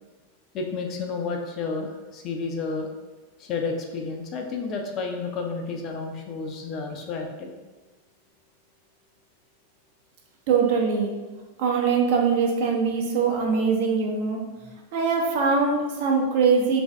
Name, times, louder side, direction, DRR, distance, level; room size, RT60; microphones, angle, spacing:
voice 1, 0.5-2.9 3.4-7.5, left 4 dB, 35° left, 2 dB, 0.5 m, -31 dB
voice 2, 10.5-11.1 11.6-14.4 14.9-16.8, right 5 dB, 50° right, 0 dB, 0.6 m, -22 dB
3.1 x 2.6 x 3.3 m, 1.3 s
figure-of-eight pair, 90°, 0 cm